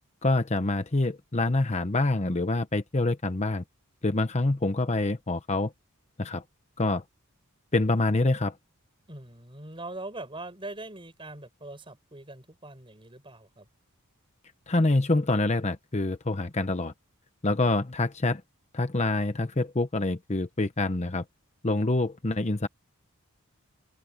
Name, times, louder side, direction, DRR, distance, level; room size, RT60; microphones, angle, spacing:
voice 1, 0.2-3.6 4.0-5.7 6.2-6.4 6.8-7.0 7.7-8.6 14.7-16.9 17.4-18.4 18.7-21.2 21.6-22.7, left 2 dB, 30° left, 0.8 m, -26 dB
voice 2, 9.1-13.7, right 2 dB, 25° right, 5.8 m, -42 dB
head